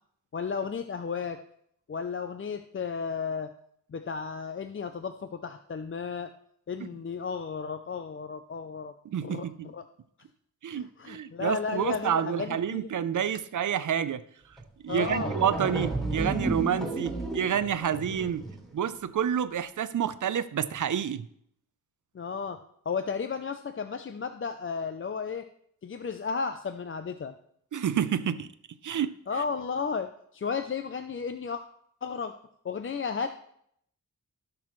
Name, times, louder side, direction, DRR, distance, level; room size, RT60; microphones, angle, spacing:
voice 1, 0.3-1.4 1.9-3.5 3.9-6.3 6.7-8.9 9.2-9.8 10.7-12.9 14.9-15.4 22.1-25.4 25.8-27.3 29.3-31.6 32.0-32.3 32.6-33.3, left 5 dB, 35° left, 9 dB, 0.5 m, -33 dB
voice 2, 9.0-9.7 10.6-14.2 14.8-18.4 18.7-21.3 27.7-28.5 28.8-29.1, right 8 dB, 60° right, 13 dB, 0.6 m, -29 dB
sound 1, 14.6-14.7 14.9-18.7, right 2 dB, ahead, 2.0 m, -33 dB
16.0 x 6.1 x 3.2 m, 0.68 s
wide cardioid pair, 105°, 34 cm